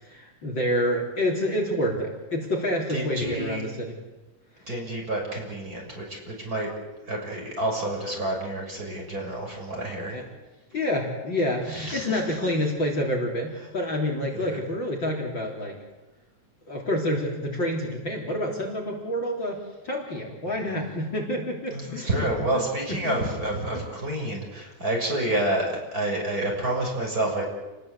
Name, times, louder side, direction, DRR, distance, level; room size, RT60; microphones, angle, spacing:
voice 1, 0.0-4.0 10.1-10.3 10.7-15.8 16.7-19.6 19.8-23.2, left 1 dB, 40° left, 1 dB, 4.2 m, -28 dB
voice 2, 2.9-3.6 4.7-6.7 7.1-10.2 11.7-12.4 14.3-14.6 21.7-27.5, right 1 dB, 30° right, 0 dB, 6.9 m, -29 dB
29.5 x 20.0 x 8.3 m, 1.1 s
omnidirectional pair, 3.4 m